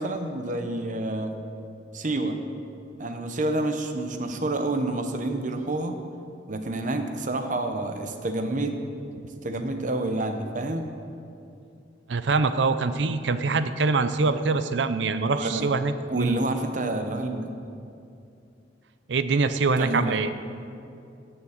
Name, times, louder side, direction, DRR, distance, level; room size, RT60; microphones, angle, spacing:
voice 1, 0.0-1.3 1.9-2.4 3.0-6.0 6.5-8.8 9.4-10.9 15.3-15.7 16.1-17.5 19.8-20.2, right 2 dB, 45° right, 6 dB, 0.9 m, -28 dB
voice 2, 12.1-16.4 19.1-20.3, right 4 dB, 75° right, 11 dB, 0.6 m, -24 dB
10.0 x 7.2 x 7.2 m, 2.6 s
head